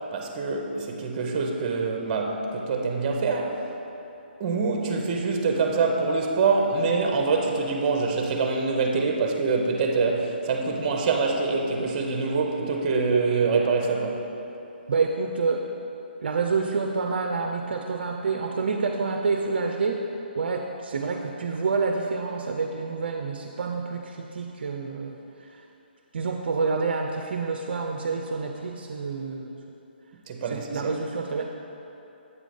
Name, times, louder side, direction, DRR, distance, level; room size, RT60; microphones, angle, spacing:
voice 1, 0.1-3.7 4.4-14.3 30.3-30.9, right 4 dB, 35° right, 2 dB, 0.8 m, -25 dB
voice 2, 14.9-15.7 16.2-20.0 20.4-25.2 25.5-25.6 26.1-29.5 30.5-31.5, right 4 dB, 65° right, 2 dB, 0.5 m, -28 dB
8.1 x 3.7 x 5.1 m, 3.0 s
hypercardioid pair, 150°, 6 cm